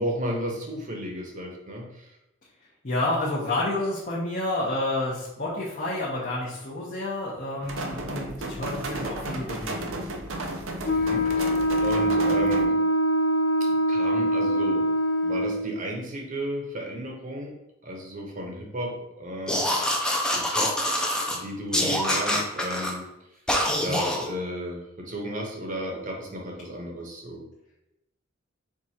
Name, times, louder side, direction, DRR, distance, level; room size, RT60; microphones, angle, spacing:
voice 1, 0.0-2.1 10.9-11.5 11.8-12.8 13.7-14.9 15.2-17.6 17.8-19.7 20.2-20.9 21.3-23.1 23.8-27.5, equal, 40° right, 0 dB, 0.9 m, -33 dB
voice 2, 2.8-10.0, left 2 dB, 45° left, -7 dB, 0.9 m, -29 dB
sound 1, 7.6-12.6, right 2 dB, 80° right, 0.6 m, -33 dB
Wind instrument woodwind instrument, 10.8-15.7, equal, 65° left, 0.5 m, -23 dB
sound 2, 19.5-21.4 21.7-22.9 23.5-24.3, left 1 dB, 5° left, 0.5 m, -25 dB
4.7 x 2.5 x 4.1 m, 0.90 s
head